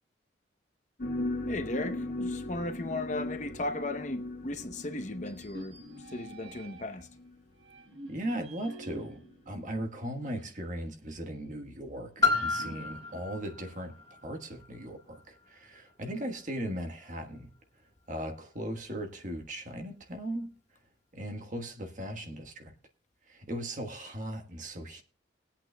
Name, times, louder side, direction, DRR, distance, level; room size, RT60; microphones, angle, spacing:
sound 1, 1.0-7.4 8.1-8.3 9.1-9.3 9.9-10.0, left 1 dB, 55° left, 1.4 m, -38 dB
voice 1, 1.5-7.1, left 2 dB, 40° left, 0.8 m, -36 dB
sound 2, 5.2-7.0 7.6-10.6 11.0-11.1 12.2-14.3, right 1 dB, 80° right, 1.1 m, -49 dB
voice 2, 8.1-13.9 14.2-17.5 18.1-20.5 21.1-22.7 23.3-25.0, right 1 dB, 45° right, 1.3 m, -38 dB
Piano, 12.2-17.6 18.4-18.5, left 4 dB, 20° left, 2.7 m, -34 dB
20.5 x 8.5 x 2.2 m
head